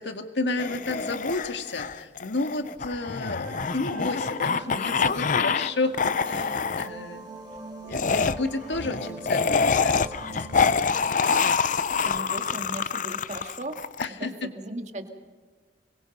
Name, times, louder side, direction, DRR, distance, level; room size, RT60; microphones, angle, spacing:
voice 1, 0.0-7.3 7.8-10.9 14.0-14.5, left 2 dB, 75° left, 6 dB, 2.0 m, -32 dB
sound 1, 0.6-5.7 5.9-6.9 7.9-14.1, left 5 dB, 45° left, 0.6 m, -26 dB
sound 2, 3.4-11.2, right 2 dB, 25° right, 2.5 m, -43 dB
voice 2, 12.0-13.9 14.2-15.1, right 1 dB, 40° right, 5 dB, 2.1 m, -37 dB
24.5 x 22.0 x 5.4 m, 1.4 s
head